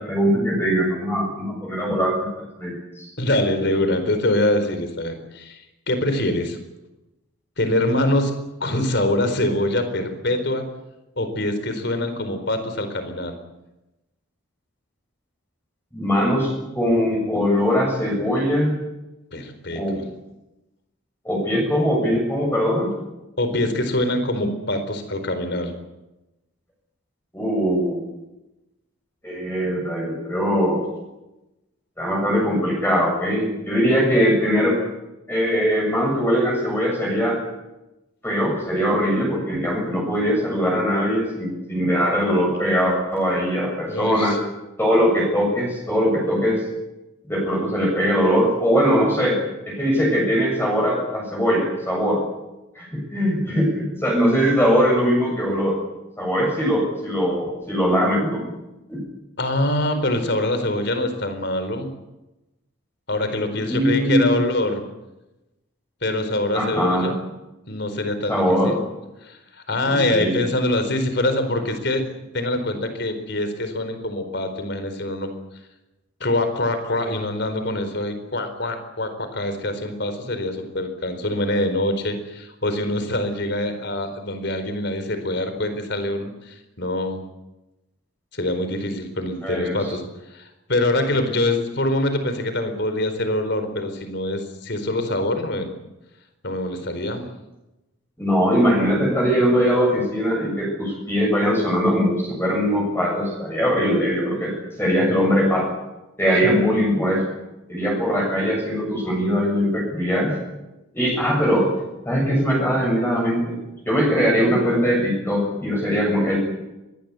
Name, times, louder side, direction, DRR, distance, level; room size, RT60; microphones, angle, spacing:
voice 1, 0.1-3.1 15.9-18.7 19.7-20.0 21.2-22.9 27.3-28.1 29.2-30.8 32.0-34.8 35.3-37.4 38.2-44.4 44.8-46.6 47.3-49.4 49.6-52.2 52.8-55.8 56.2-58.5 58.9-59.0 63.7-64.4 66.5-67.1 68.3-68.8 69.8-70.4 89.4-89.9 98.2-105.7 106.2-107.3 107.7-110.3 110.9-111.7 112.1-113.5 113.9-116.4, equal, 10° left, -2 dB, 7.2 m, -21 dB
voice 2, 3.2-6.6 7.6-8.3 8.6-10.7 11.2-13.4 19.3-20.0 23.4-25.7 43.9-44.4 59.4-61.9 63.1-64.8 66.0-67.2 67.7-68.8 69.2-72.1 72.3-75.3 76.2-87.2 88.3-90.0 90.3-95.7 96.4-97.3 106.4-106.6, left 1 dB, 55° left, 8 dB, 4.5 m, -24 dB
23.5 x 20.0 x 8.4 m, 0.98 s
head